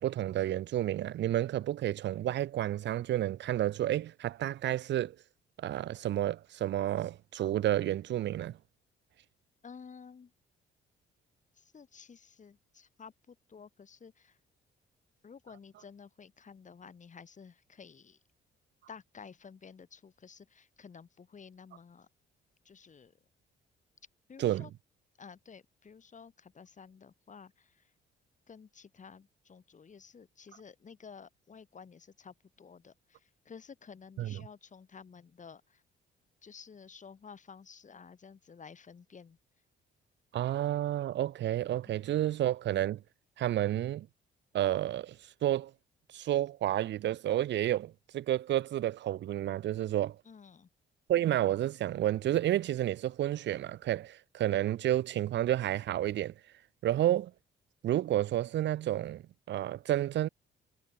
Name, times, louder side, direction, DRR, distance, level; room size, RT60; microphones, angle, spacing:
voice 1, 0.0-5.2 5.6-8.6 24.4-24.7 34.2-34.4 40.3-43.0 43.4-44.1 44.5-45.2 45.4-45.7 46.1-50.2 51.1-56.3 56.8-57.3 57.8-60.3, right 13 dB, 65° right, 0.6 m, -30 dB
voice 2, 9.6-10.3 11.5-14.4 15.2-18.2 18.9-22.1 22.6-23.2 24.3-24.7 25.2-27.9 28.5-35.8 36.4-39.4 41.9-42.0 50.2-50.7, left 6 dB, 40° left, 3.0 m, -52 dB
cardioid pair, 90°, 20 cm